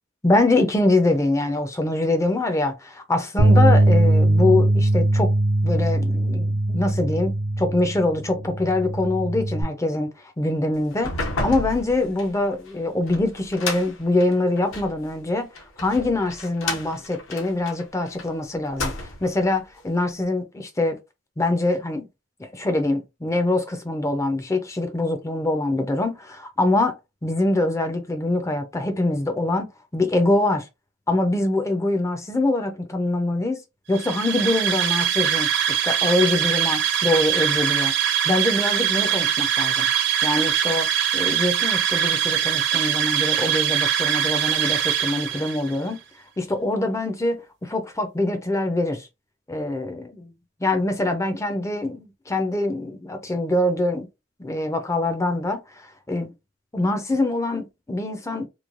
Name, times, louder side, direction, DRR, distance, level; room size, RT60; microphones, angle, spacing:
voice 1, 0.2-5.3 5.6-10.1 10.4-21.0 21.4-22.1 22.4-29.7 29.9-30.7 31.1-33.6 33.9-37.9 38.2-39.9 40.2-40.9 41.1-46.0 46.4-49.1 49.5-50.3 50.6-54.1 54.4-56.3 56.7-58.5, left 2 dB, 15° left, 0.4 m, -24 dB
Bass guitar, 3.4-9.6, right 1 dB, 85° right, 0.8 m, -20 dB
sound 1, 10.9-15.0 15.6-18.3 18.6-19.4, left 2 dB, 75° left, 0.8 m, -32 dB
sound 2, 33.9-45.7, right 9 dB, 55° right, 0.6 m, -22 dB
3.0 x 2.2 x 2.4 m
head